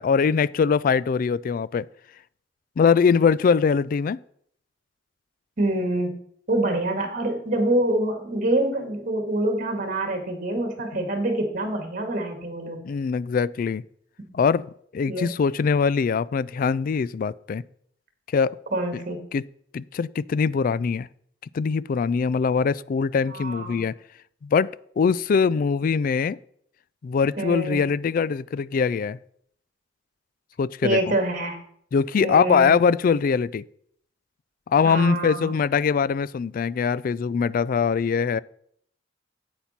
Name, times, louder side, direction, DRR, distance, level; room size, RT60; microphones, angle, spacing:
voice 1, 0.0-1.9 2.8-4.2 10.9-11.1 12.8-13.8 14.3-17.6 18.3-18.6 19.3-19.4 19.7-21.1 21.5-23.9 24.4-24.7 25.0-26.4 27.0-29.2 30.6-31.0 31.9-33.6 34.7-38.4, left 5 dB, 50° left, 20 dB, 0.3 m, -22 dB
voice 2, 5.6-6.2 6.5-12.8 14.2-14.3 15.1-15.3 18.7-19.2 23.3-23.8 27.4-27.8 30.8-31.6 32.2-32.7 34.8-35.5, right 1 dB, 45° right, 5 dB, 1.9 m, -26 dB
10.0 x 8.4 x 4.2 m, 0.65 s
head